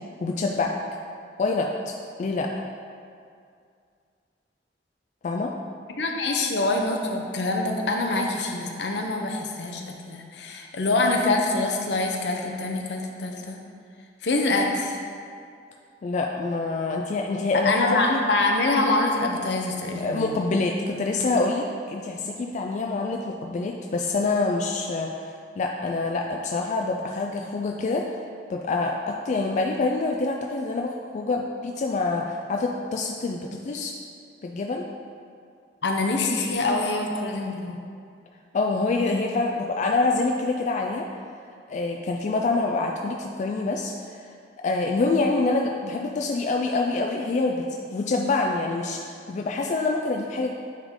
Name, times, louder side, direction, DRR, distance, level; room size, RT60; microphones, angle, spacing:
voice 1, 0.2-0.7 1.4-1.7 2.2-2.5 5.2-5.5 16.0-17.7 18.1-18.2 20.0-25.1 25.6-28.1 28.5-33.9 34.4-34.8 38.5-41.1 41.7-44.2 44.6-47.6 47.9-49.0 49.3-50.5, left 3 dB, 45° left, 1 dB, 0.3 m, -26 dB
voice 2, 6.0-13.6 14.2-15.0 17.6-20.4 35.8-37.8, left 2 dB, 70° left, 2 dB, 0.7 m, -25 dB
9.3 x 3.7 x 3.6 m, 2.3 s
head